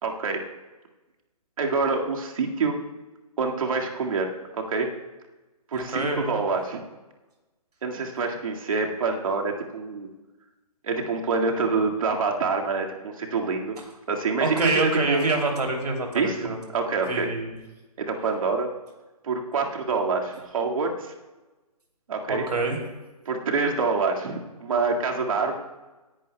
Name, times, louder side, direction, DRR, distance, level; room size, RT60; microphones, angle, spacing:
voice 1, 0.0-0.4 1.6-2.8 3.4-4.9 5.7-6.8 7.8-10.1 10.8-13.8 14.1-15.2 16.1-17.3 18.0-18.7 19.2-21.1 22.1-22.4 23.3-25.6, right 4 dB, 60° right, 1 dB, 2.0 m, -26 dB
voice 2, 5.7-6.4 14.4-16.6 17.1-17.6 22.3-22.8, right 2 dB, 85° right, 1 dB, 2.9 m, -26 dB
18.5 x 11.5 x 2.3 m, 1.1 s
hypercardioid pair, 145°, 20 cm